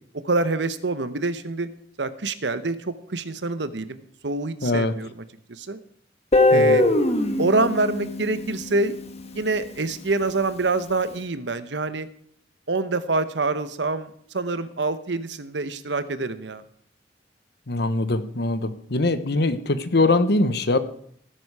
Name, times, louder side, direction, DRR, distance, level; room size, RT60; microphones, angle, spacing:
voice 1, 0.2-1.7 2.0-4.0 4.2-5.1 5.5-5.8 6.5-6.8 7.4-8.9 9.3-12.1 12.7-16.6, right 3 dB, 75° right, 13 dB, 1.0 m, -26 dB
voice 2, 4.6-4.9 6.5-6.8 17.7-20.8, left 2 dB, 65° left, 12 dB, 1.1 m, -22 dB
Guitar, 6.3-9.3, left 2 dB, 35° left, 1.5 m, -21 dB
17.5 x 10.0 x 4.8 m, 0.64 s
head